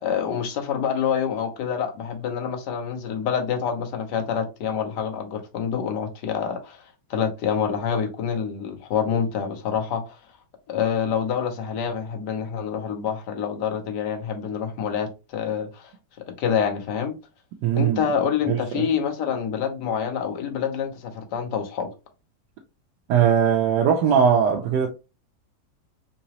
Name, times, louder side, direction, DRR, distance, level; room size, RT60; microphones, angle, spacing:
voice 1, 0.0-6.8 7.1-10.2 10.7-15.9 16.4-17.2 17.8-21.9, left 7 dB, 85° left, 1.4 m, -27 dB
voice 2, 17.6-18.0 18.5-18.8 23.1-24.9, right 8 dB, 80° right, 1.2 m, -20 dB
3.9 x 2.8 x 2.9 m
omnidirectional pair, 1.8 m